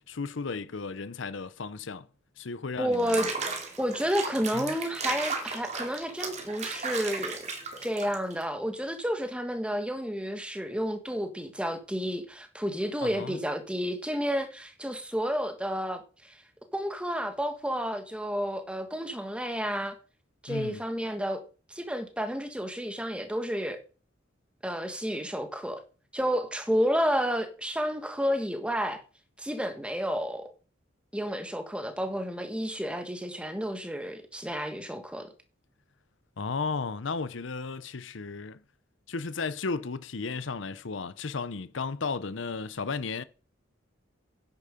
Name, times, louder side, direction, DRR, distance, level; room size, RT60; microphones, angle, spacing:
voice 1, 0.1-2.1 2.4-3.3 4.5-4.8 13.0-13.4 20.5-20.8 36.4-38.6 39.1-43.2, left 4 dB, 70° left, 0.7 m, -34 dB
voice 2, 2.8-3.3 3.8-7.5 7.8-16.4 16.7-19.9 20.4-21.4 21.7-23.8 24.6-25.8 26.1-29.0 29.4-30.5 31.1-35.3, equal, 5° right, 1.5 m, -31 dB
Water / Bathtub (filling or washing), 2.9-8.4, right 4 dB, 35° right, 2.7 m, -35 dB
10.0 x 8.7 x 5.1 m
head